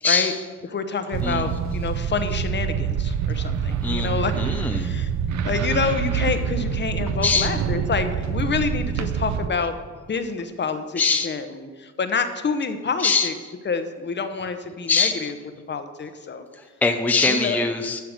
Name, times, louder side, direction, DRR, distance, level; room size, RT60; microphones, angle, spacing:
voice 1, 0.0-0.4 1.2-1.5 3.8-4.9 7.2-7.5 11.0-11.3 13.0-13.5 14.9-15.3 16.5-18.0, left 4 dB, 5° left, 5 dB, 0.6 m, -23 dB
voice 2, 0.7-4.4 4.7-5.1 5.4-13.3 13.7-15.3 15.7-16.5 17.2-17.6, left 5 dB, 35° left, 8 dB, 0.9 m, -27 dB
sound 1, 1.1-9.5, right 7 dB, 70° right, 0.6 m, -26 dB
11.5 x 4.7 x 6.5 m, 1.5 s
cardioid pair, 90°, 30 cm